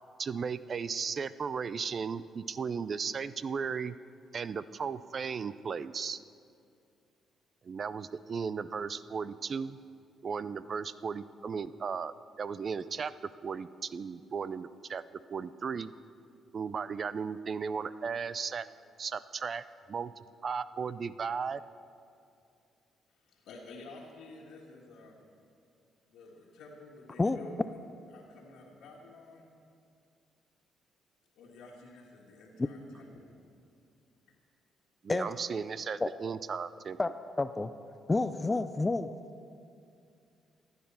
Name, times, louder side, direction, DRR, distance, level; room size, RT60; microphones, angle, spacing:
voice 1, 0.2-4.0 4.3-6.2 7.6-9.8 10.2-15.0 15.3-15.9 16.5-18.7 19.0-21.6 35.0-37.0, right 6 dB, 45° right, 16 dB, 0.4 m, -36 dB
voice 2, 23.1-25.2 26.1-29.5 31.3-33.3 34.2-34.3, left 2 dB, 90° left, -5 dB, 1.7 m, -51 dB
voice 3, 37.4-37.7 38.1-39.1, left 3 dB, 20° left, 11 dB, 0.4 m, -29 dB
14.5 x 9.6 x 5.6 m, 2.4 s
cardioid pair, 90°, 0 cm